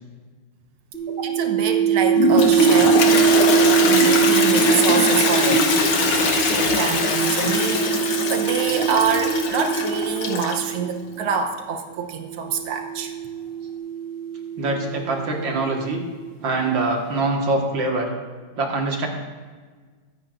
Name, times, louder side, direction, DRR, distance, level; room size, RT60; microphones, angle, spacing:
sound 1, 0.9-11.3 12.2-15.9, right 9 dB, 35° left, 1.7 m, -23 dB
voice 1, 1.2-3.0 3.9-13.1, right 6 dB, 80° right, 4 dB, 1.9 m, -26 dB
Toilet flush, 2.1-10.7, left 3 dB, 85° left, 2.2 m, -21 dB
voice 2, 14.6-16.0 16.4-18.1 18.6-19.1, right 2 dB, 65° right, 0 dB, 2.4 m, -23 dB
23.0 x 9.8 x 2.6 m, 1.5 s
omnidirectional pair, 2.3 m